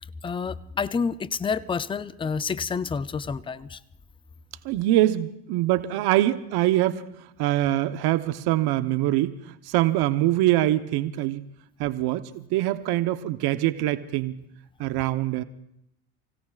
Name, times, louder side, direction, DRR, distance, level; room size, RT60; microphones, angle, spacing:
voice 1, 0.2-3.8, left 5 dB, 10° left, 16 dB, 0.5 m, -29 dB
voice 2, 4.6-7.0 7.4-9.4 9.7-11.4 11.8-14.4 14.8-15.4, right 15 dB, 60° right, 11 dB, 1.0 m, -24 dB
29.0 x 16.5 x 2.4 m, 0.77 s
hypercardioid pair, 80°, 44 cm